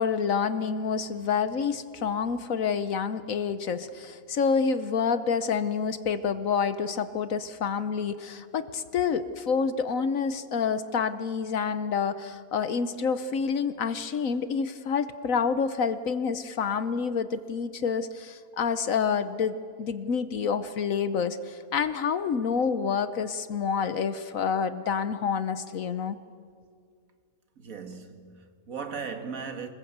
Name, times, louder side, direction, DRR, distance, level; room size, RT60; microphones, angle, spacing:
voice 1, 0.0-26.2, left 6 dB, 65° left, 1.2 m, -28 dB
voice 2, 27.6-29.7, right 5 dB, 65° right, 2.1 m, -37 dB
26.0 x 21.0 x 8.0 m
omnidirectional pair, 1.6 m